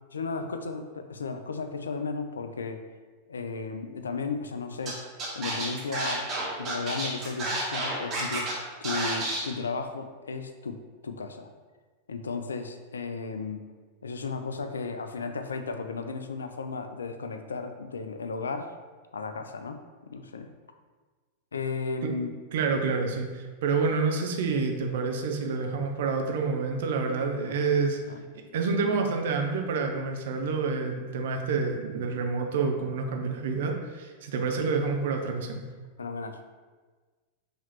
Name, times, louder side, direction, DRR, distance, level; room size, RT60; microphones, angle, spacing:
voice 1, 0.1-2.8 3.3-5.0 5.3-11.5 12.1-13.6 14.0-18.7 19.1-20.5 21.5-22.4 27.4-27.6 28.1-28.2 36.0-36.4, left 4 dB, 70° left, 7 dB, 0.3 m, -35 dB
Scratching (performance technique), 4.9-5.0 5.2-8.5 8.8-9.4, right 2 dB, 35° right, 1.3 m, -30 dB
voice 2, 22.5-28.0 28.3-35.6, right 4 dB, 55° right, 3 dB, 0.5 m, -28 dB
5.6 x 2.8 x 3.0 m, 1.4 s
figure-of-eight pair, 90°, 0 cm